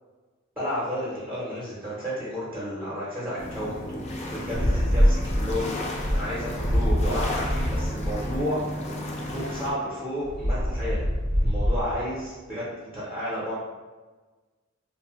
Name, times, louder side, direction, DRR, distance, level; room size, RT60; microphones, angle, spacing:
voice 1, 0.6-4.0 4.3-5.7 6.1-8.6 9.3-11.0 11.4-13.5, equal, 5° right, -9 dB, 0.6 m, -32 dB
sound 1, 3.4-9.7, left 1 dB, 35° left, 0.4 m, -34 dB
sound 2, 4.5-8.4 10.2-11.9, equal, 80° right, 0.6 m, -25 dB
2.7 x 2.0 x 3.0 m, 1.3 s
head